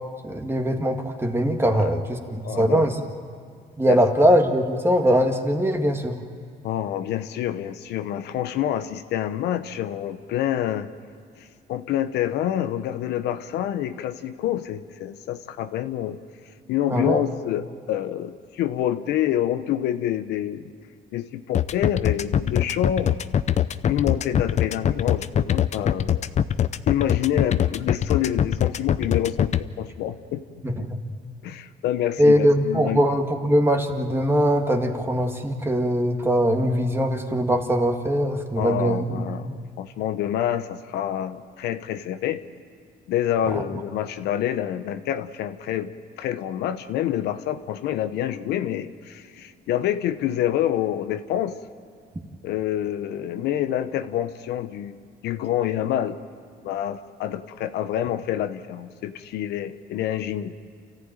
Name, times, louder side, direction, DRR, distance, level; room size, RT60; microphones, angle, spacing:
voice 1, 0.2-3.0 3.8-6.2 16.9-17.2 30.6-31.0 32.2-39.5 43.5-43.6, equal, 15° right, 4 dB, 2.0 m, -21 dB
voice 2, 2.4-2.9 3.9-4.0 6.6-10.9 11.7-16.2 16.7-20.6 21.1-23.1 23.9-26.3 26.9-30.4 31.4-33.0 38.6-42.4 43.1-45.9 46.2-51.5 52.4-55.0 55.2-56.2 56.6-60.5, left 11 dB, 80° left, 10 dB, 1.0 m, -27 dB
sound 1, 21.5-29.6, left 9 dB, 40° left, 0.6 m, -22 dB
29.0 x 14.5 x 9.1 m, 2.2 s
cardioid pair, 110°, 17 cm